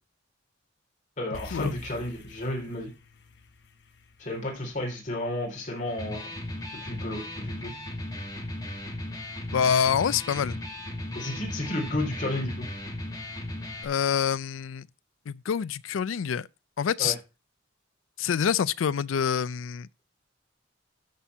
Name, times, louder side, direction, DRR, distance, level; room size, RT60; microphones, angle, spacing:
voice 1, 1.2-2.9 4.2-6.2 6.8-7.7 11.1-12.7 17.0-17.1, left 1 dB, 40° left, 3.8 m, -32 dB
sound 1, 1.3-5.9, left 2 dB, 60° left, 1.1 m, -47 dB
Electric guitar, 5.9-13.9, left 1 dB, 20° left, 1.9 m, -36 dB
voice 2, 9.5-10.6 13.8-14.9 15.3-16.5 16.8-17.2 18.2-19.9, left 7 dB, 90° left, 0.4 m, -26 dB
13.0 x 4.4 x 5.6 m
head